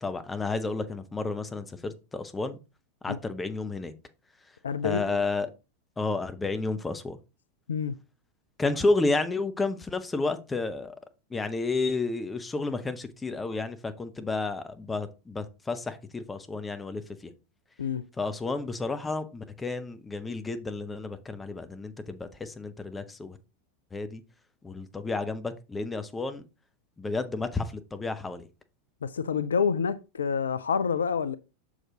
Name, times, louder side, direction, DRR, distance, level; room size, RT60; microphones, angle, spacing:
voice 1, 0.0-2.6 3.0-3.9 4.8-5.5 6.0-7.2 8.6-10.9 11.3-17.3 18.2-23.4 23.9-24.2 24.6-26.4 27.0-28.5, left 3 dB, 15° left, 0.8 m, -31 dB
voice 2, 4.6-5.2 7.7-8.0 17.8-18.0 29.0-31.4, left 6 dB, 70° left, 0.3 m, -28 dB
6.3 x 4.8 x 3.7 m
figure-of-eight pair, 85°, 0 cm